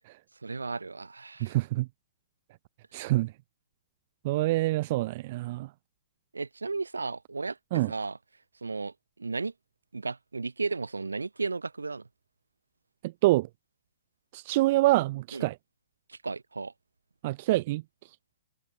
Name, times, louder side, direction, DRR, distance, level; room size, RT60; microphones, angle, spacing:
voice 1, 0.4-1.5 6.3-8.2 8.6-8.9 9.2-9.5 9.9-12.0 15.3-15.5 16.1-16.7, right 3 dB, 80° right, 7.0 m, -34 dB
voice 2, 1.4-1.9 2.9-3.3 4.2-5.7 7.7-7.9 13.0-13.5 14.3-15.6 17.2-17.8, right 18 dB, 45° right, 2.0 m, -26 dB
figure-of-eight pair, 115°, 0 cm